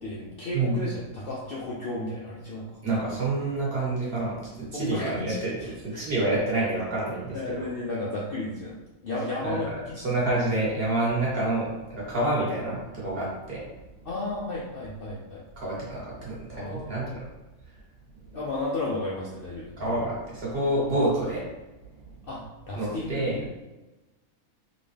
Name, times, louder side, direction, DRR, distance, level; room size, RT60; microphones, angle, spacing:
voice 1, 0.0-2.8 4.7-6.0 7.3-8.8 9.0-10.0 10.4-10.5 14.0-15.4 16.6-17.2 18.3-20.1 22.2-23.5, left 2 dB, 55° left, -4 dB, 0.7 m, -33 dB
voice 2, 2.8-7.6 9.4-13.6 15.6-17.2 19.8-21.4 22.0-22.1 22.8-23.5, right 2 dB, 45° right, -6 dB, 1.6 m, -28 dB
3.7 x 3.7 x 3.3 m, 1.1 s
omnidirectional pair, 1.5 m